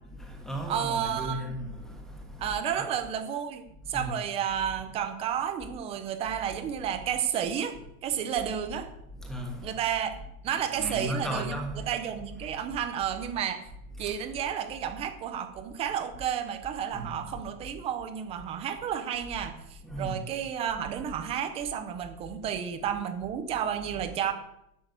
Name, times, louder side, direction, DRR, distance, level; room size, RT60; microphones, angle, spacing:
voice 1, 0.2-2.8 3.9-4.1 9.1-9.8 10.8-11.9 12.4-12.6 14.0-14.1 16.9-17.3 19.8-20.2, right 1 dB, ahead, 1.5 m, -36 dB
voice 2, 0.7-1.5 2.4-7.8 8.0-8.9 9.6-10.2 10.4-11.6 11.9-13.7 14.0-24.3, right 9 dB, 15° right, 0.5 m, -31 dB
12.0 x 6.3 x 8.0 m
supercardioid pair, 170°, 43 cm